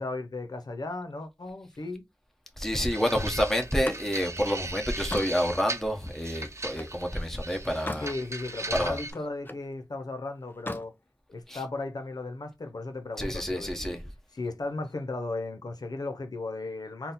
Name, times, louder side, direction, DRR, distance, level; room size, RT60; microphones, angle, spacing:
voice 1, 0.0-2.0 8.0-10.9 11.3-14.0 14.3-17.1, left 2 dB, 75° left, 0.5 m, -36 dB
voice 2, 2.6-8.1 8.7-9.0 11.5-11.7 13.2-14.0, equal, 5° left, 1.0 m, -28 dB
sound 1, 2.9-9.1, right 2 dB, 45° right, 0.8 m, -38 dB
Slam, 3.6-7.0 7.5-8.2 8.5-9.7 10.5-10.9, left 1 dB, 30° left, 0.5 m, -40 dB
4.0 x 2.1 x 4.0 m
wide cardioid pair, 45°, 7 cm